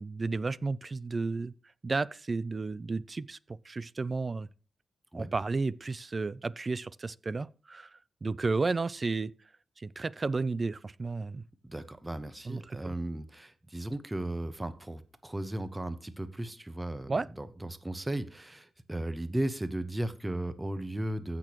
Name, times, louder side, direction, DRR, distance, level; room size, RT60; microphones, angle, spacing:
voice 1, 0.0-1.5 1.8-4.5 5.1-7.9 8.2-9.3 9.8-11.4 12.4-12.9 17.1-17.3, right 3 dB, 40° right, 0.5 m, -32 dB
voice 2, 11.6-21.4, right 1 dB, 15° right, 1.1 m, -36 dB
15.5 x 6.1 x 3.0 m
cardioid pair, 75°, 0 cm